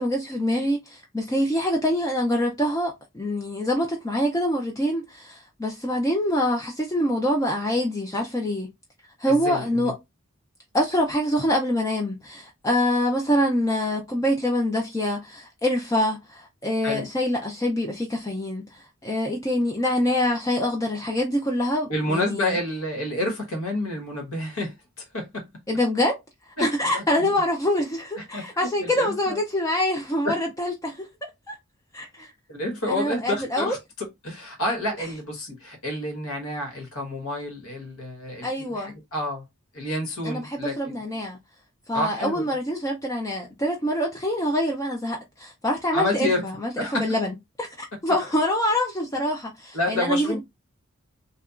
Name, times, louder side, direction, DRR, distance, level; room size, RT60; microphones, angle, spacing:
voice 1, 0.0-8.7 9.2-9.9 10.7-22.6 25.7-26.1 26.6-31.1 31.5-31.6 31.9-32.3 32.9-33.7 38.4-38.9 40.2-41.4 41.9-47.3 48.0-50.4, left 1 dB, 15° left, 0.4 m, -25 dB
voice 2, 9.3-9.9 16.8-17.1 21.9-25.4 26.6-26.7 26.9-27.3 28.2-29.4 30.2-30.4 32.2-39.5 39.7-41.0 41.9-42.5 45.9-46.4 46.8-47.1 49.7-50.4, left 1 dB, 75° left, 1.2 m, -29 dB
2.8 x 2.3 x 2.3 m
head